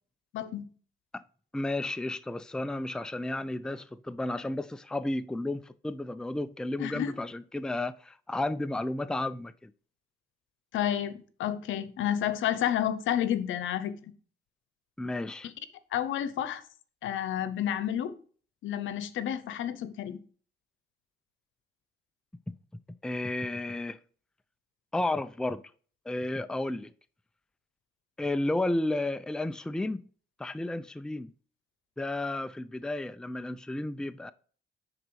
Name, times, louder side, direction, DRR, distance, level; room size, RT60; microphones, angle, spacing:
voice 1, 0.3-0.7 6.8-7.1 10.7-14.1 15.9-16.6 17.0-18.2 18.6-20.2, left 10 dB, 80° left, 0.9 m, -30 dB
voice 2, 1.5-9.7 15.0-15.5 23.0-24.0 24.9-25.6 26.1-26.9 28.2-30.0 30.4-31.3 32.0-34.3, left 2 dB, 5° left, 0.4 m, -32 dB
10.0 x 4.0 x 4.7 m
cardioid pair, 90°, 20 cm